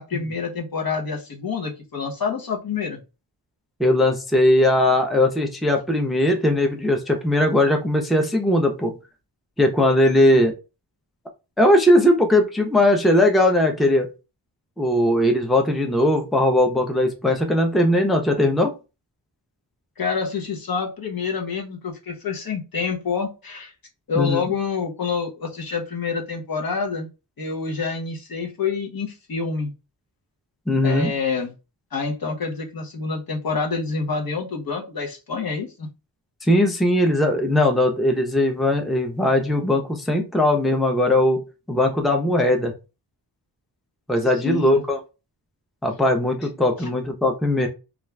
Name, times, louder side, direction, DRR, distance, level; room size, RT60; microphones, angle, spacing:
voice 1, 0.0-3.0 10.2-10.4 20.0-23.7 24.1-27.1 27.4-29.7 30.8-31.5 31.9-35.9 44.4-44.8 46.8-46.9, left 5 dB, 55° left, 1 dB, 0.8 m, -27 dB
voice 2, 3.8-8.9 9.6-10.5 11.6-14.1 14.8-18.7 24.1-24.5 30.7-31.1 36.4-41.4 41.7-42.7 44.1-45.0 45.8-47.7, left 1 dB, ahead, 4 dB, 0.5 m, -19 dB
2.4 x 2.2 x 3.1 m, 0.29 s
wide cardioid pair, 65°, 42 cm